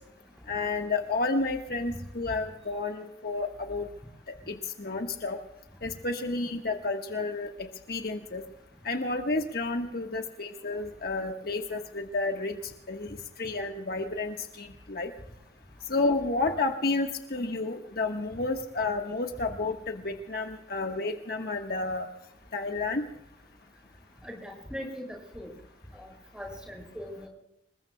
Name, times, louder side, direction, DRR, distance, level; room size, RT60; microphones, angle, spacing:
voice 1, 0.5-3.9 4.5-5.4 5.8-8.4 8.8-15.1 15.8-22.1 22.5-23.1, left 3 dB, 60° left, 4 dB, 1.3 m, -31 dB
voice 2, 24.3-25.0 25.3-25.5 25.9-26.1 26.3-27.3, equal, 5° right, 0 dB, 6.7 m, -40 dB
28.5 x 21.0 x 2.2 m, 0.84 s
head